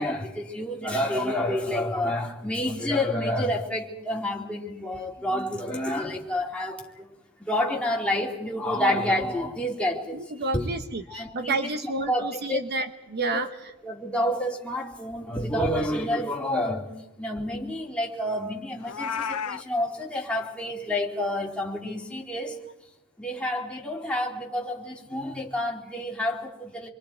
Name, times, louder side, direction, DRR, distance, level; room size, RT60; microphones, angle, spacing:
voice 1, 0.0-7.1 7.5-10.2 10.5-10.7 11.1-11.7 12.1-12.6 13.2-13.5 13.8-16.9 17.2-22.6 23.2-26.9, left 1 dB, 5° left, -2 dB, 2.7 m, -29 dB
voice 2, 10.1-13.5, right 3 dB, 50° right, 8 dB, 0.9 m, -30 dB
Meow, 18.8-19.6, left 6 dB, 75° left, 0.8 m, -31 dB
29.0 x 23.0 x 4.5 m, 0.92 s
head